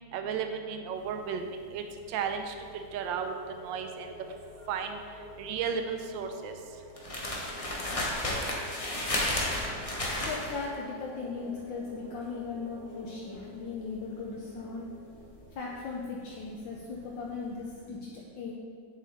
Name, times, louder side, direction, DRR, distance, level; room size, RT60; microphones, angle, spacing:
voice 1, 0.1-4.1 4.7-5.0 5.4-6.5, right 6 dB, 75° right, 6 dB, 1.4 m, -34 dB
sound 1, 1.0-17.2 17.4-17.8, left 1 dB, 25° left, 0.9 m, -35 dB
sound 2, 2.0-16.3, equal, 55° right, 1.3 m, -51 dB
voice 2, 10.2-14.9 15.5-18.5, left 4 dB, 70° left, -2 dB, 1.5 m, -38 dB
8.1 x 7.2 x 4.2 m, 2.1 s
omnidirectional pair, 2.1 m